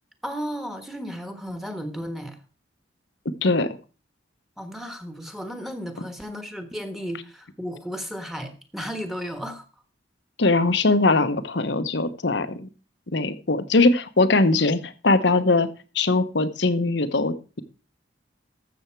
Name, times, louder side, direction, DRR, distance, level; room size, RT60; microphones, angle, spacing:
voice 1, 0.2-2.4 4.6-9.6, equal, ahead, 7 dB, 1.4 m, -34 dB
voice 2, 3.4-3.8 10.4-12.7 13.1-15.7 15.9-17.6, left 3 dB, 70° left, 12 dB, 1.0 m, -21 dB
13.5 x 7.1 x 4.6 m, 0.34 s
head